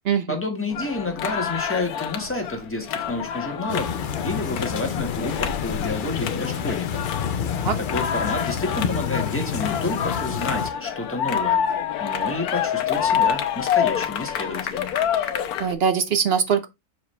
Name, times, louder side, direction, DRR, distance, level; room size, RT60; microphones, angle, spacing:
voice 1, 0.3-3.9 4.2-7.0 7.8-11.6 12.0-14.9, left 2 dB, 10° left, 1.4 m, -30 dB
sound 1, 0.7-15.7, left 8 dB, 85° left, 1.3 m, -27 dB
sound 2, 3.7-10.7, left 7 dB, 60° left, 0.5 m, -29 dB
voice 2, 15.6-16.7, right 7 dB, 55° right, 0.7 m, -22 dB
6.2 x 4.8 x 3.3 m
omnidirectional pair, 1.6 m